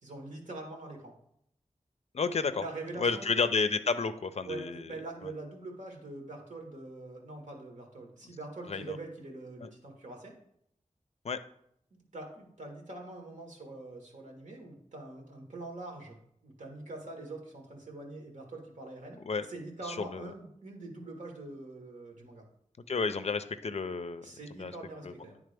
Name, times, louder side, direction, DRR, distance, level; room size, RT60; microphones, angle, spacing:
voice 1, 0.0-1.1 2.5-3.3 4.4-10.3 11.9-16.2 16.4-19.2 19.5-22.4 24.2-25.4, right 2 dB, 80° right, 0 dB, 1.5 m, -44 dB
voice 2, 2.1-2.6 3.0-4.9 5.2-5.3 8.7-9.0 9.6-9.7 11.2-11.4 19.2-19.5 19.8-20.3 22.9-24.3 24.6-24.7 25.0-25.1, left 4 dB, 60° left, 11 dB, 0.4 m, -31 dB
10.0 x 3.6 x 3.4 m, 0.72 s
wide cardioid pair, 75°, 13 cm